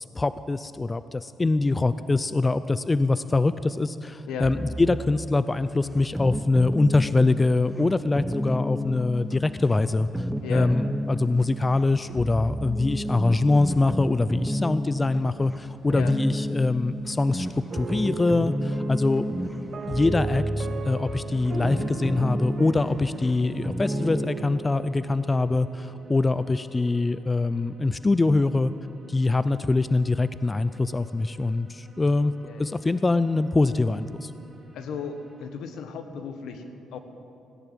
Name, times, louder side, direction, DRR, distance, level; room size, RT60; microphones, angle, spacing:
voice 1, 0.0-17.5 17.7-19.3 19.9-28.7 29.1-32.3 32.6-34.3, left 3 dB, 20° left, 14 dB, 0.4 m, -24 dB
sound 1, 4.4-24.3, equal, ahead, 0.8 m, -31 dB
voice 2, 10.4-10.7 15.9-16.1 32.0-32.7 34.7-37.0, left 6 dB, 80° left, 8 dB, 1.3 m, -36 dB
sound 2, 17.6-35.5, right 2 dB, 30° right, 3.7 m, -54 dB
sound 3, 17.7-26.9, right 5 dB, 45° right, 1.3 m, -38 dB
17.0 x 10.5 x 7.5 m, 2.6 s
cardioid pair, 90°, 0 cm